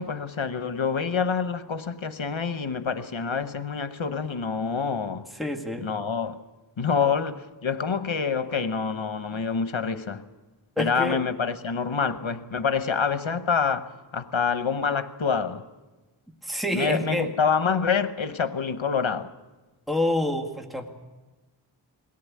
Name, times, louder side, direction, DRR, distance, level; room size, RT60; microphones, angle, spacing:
voice 1, 0.0-5.3 5.8-6.4 6.8-10.2 10.8-15.6 16.7-19.3, left 6 dB, 85° left, 1.0 m, -27 dB
voice 2, 5.4-5.9 9.3-9.4 10.8-11.2 16.4-17.3 19.9-20.9, left 1 dB, ahead, 1.8 m, -27 dB
21.5 x 17.5 x 8.4 m
wide cardioid pair, 45°, 46 cm